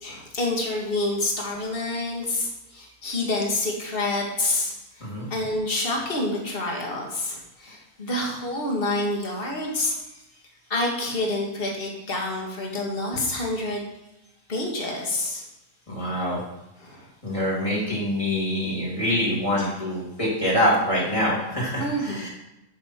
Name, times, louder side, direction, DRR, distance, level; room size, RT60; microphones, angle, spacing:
voice 1, 0.0-4.7 5.3-10.0 10.7-13.8 14.5-15.4 16.8-17.1 19.6-19.7 21.8-22.2, left 2 dB, 35° left, -1 dB, 2.1 m, -27 dB
voice 2, 15.9-16.4 17.2-22.3, equal, 20° left, -6 dB, 3.4 m, -25 dB
13.0 x 6.4 x 4.5 m, 0.92 s
omnidirectional pair, 1.7 m